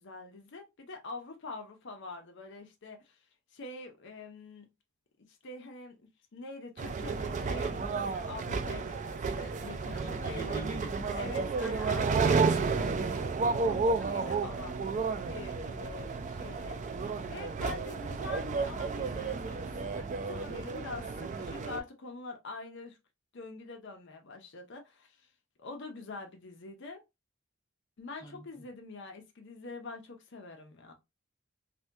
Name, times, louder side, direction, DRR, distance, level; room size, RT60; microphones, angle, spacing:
voice 1, 0.0-3.2 3.5-4.7 5.3-6.0 6.3-10.6 11.1-14.8 15.3-16.8 17.3-23.0 23.3-25.3 25.6-27.0 28.0-30.9, left 3 dB, 60° left, 0.6 m, -45 dB
sound 1, 6.8-21.8, right 4 dB, 35° right, 0.3 m, -32 dB
voice 2, 9.9-11.2 28.2-28.7, right 1 dB, 15° left, 0.7 m, -44 dB
3.3 x 2.2 x 2.6 m
head